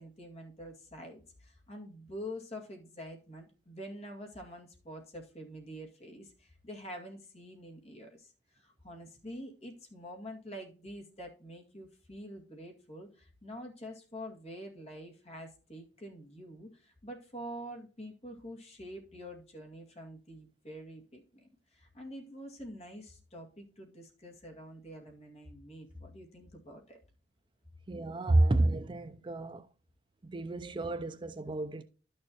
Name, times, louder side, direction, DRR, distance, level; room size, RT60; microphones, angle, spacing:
voice 1, 0.0-27.0 28.4-28.5, equal, 35° left, 2.2 m, -46 dB
voice 2, 27.9-29.7 30.2-31.8, right 2 dB, 25° right, 0.4 m, -30 dB
11.5 x 6.6 x 2.9 m
head